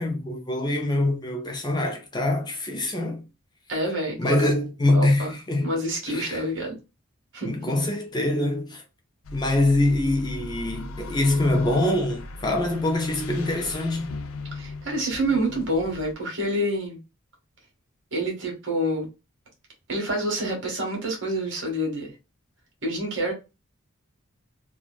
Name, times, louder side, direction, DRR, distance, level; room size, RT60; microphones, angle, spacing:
voice 1, 0.0-3.2 4.2-5.7 6.1-6.5 7.4-8.8 9.3-14.1, left 1 dB, 20° left, 0.5 m, -24 dB
voice 2, 3.7-4.5 4.9-5.3 5.6-6.8 7.3-7.8 14.6-17.0 18.1-19.1 19.9-22.1 22.8-23.3, right 1 dB, 60° right, 1.4 m, -27 dB
sound 1, 9.2-16.1, left 2 dB, 85° left, 0.5 m, -38 dB
3.1 x 2.3 x 2.3 m
head